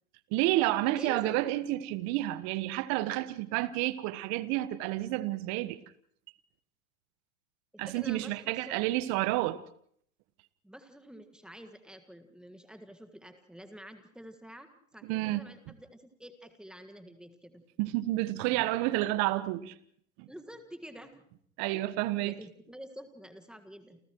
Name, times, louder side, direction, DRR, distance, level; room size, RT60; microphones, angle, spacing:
voice 1, 0.3-5.8 7.8-9.6 15.0-15.4 17.8-19.7 20.2-20.3 21.6-22.3, right 17 dB, 40° right, 1.3 m, -30 dB
voice 2, 0.8-1.5 7.7-9.0 10.6-17.6 20.3-21.2 22.2-24.0, equal, ahead, 1.7 m, -48 dB
29.0 x 29.0 x 3.1 m
hypercardioid pair, 105°, 42 cm